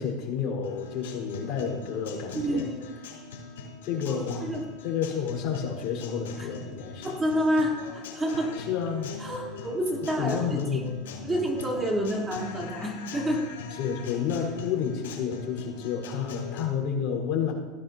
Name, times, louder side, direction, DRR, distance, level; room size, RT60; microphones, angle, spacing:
voice 1, 0.0-2.7 3.8-4.6 4.8-7.1 8.6-9.1 9.6-9.7 10.2-11.4 13.7-17.5, left 7 dB, 55° left, 0 dB, 5.1 m, -30 dB
Guitar, 0.6-16.6, left 5 dB, 85° left, 4.5 m, -41 dB
voice 2, 2.3-2.8 4.4-4.6 6.4-6.5 7.0-8.5 9.2-10.5 10.7-10.9 11.2-13.4, equal, 15° right, -2 dB, 4.0 m, -28 dB
18.5 x 15.5 x 3.0 m, 1.3 s
supercardioid pair, 115°, 0 cm